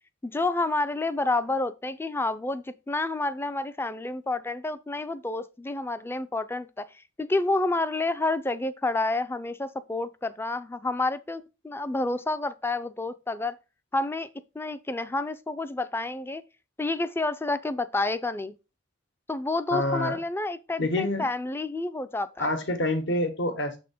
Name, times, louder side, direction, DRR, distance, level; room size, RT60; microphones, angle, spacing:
voice 1, 0.2-6.9 7.2-13.6 13.9-14.3 14.5-16.4 16.8-18.6 19.3-22.5, left 2 dB, 10° left, 0.4 m, -29 dB
voice 2, 19.7-20.2 20.8-21.3 22.4-23.8, left 1 dB, 65° left, 1.2 m, -27 dB
6.7 x 3.7 x 5.0 m
head